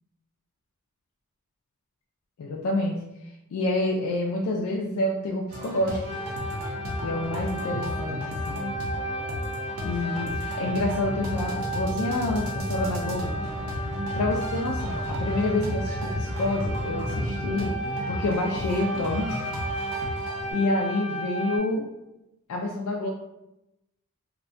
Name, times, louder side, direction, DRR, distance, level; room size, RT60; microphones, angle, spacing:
voice 1, 2.4-3.0 3.5-6.0 7.0-8.7 9.8-13.3 14.1-17.7 18.1-19.4 19.9-20.1 20.5-21.9 22.5-23.1, left 2 dB, 80° left, -1 dB, 0.3 m, -28 dB
sound 1, 5.5-20.5, equal, 75° right, 0.5 m, -34 dB
sound 2, 6.0-21.6, right 1 dB, 20° left, 0.5 m, -34 dB
sound 3, 10.9-17.6, equal, 30° right, 0.7 m, -35 dB
2.6 x 2.1 x 2.5 m, 0.91 s
head